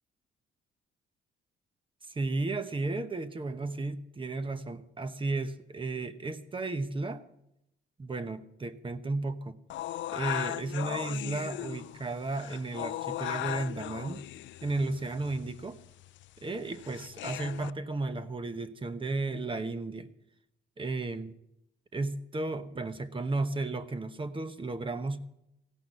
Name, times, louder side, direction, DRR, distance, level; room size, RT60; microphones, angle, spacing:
voice 1, 2.1-7.2 8.0-9.6 10.1-14.2 14.6-15.8 16.4-20.1 20.8-21.4 21.9-25.2, right 3 dB, 25° right, 11 dB, 1.0 m, -34 dB
sound 1, 9.7-17.7, left 14 dB, 70° left, 0.4 m, -38 dB
16.0 x 5.8 x 9.2 m, 0.83 s
cardioid pair, 90°, 20 cm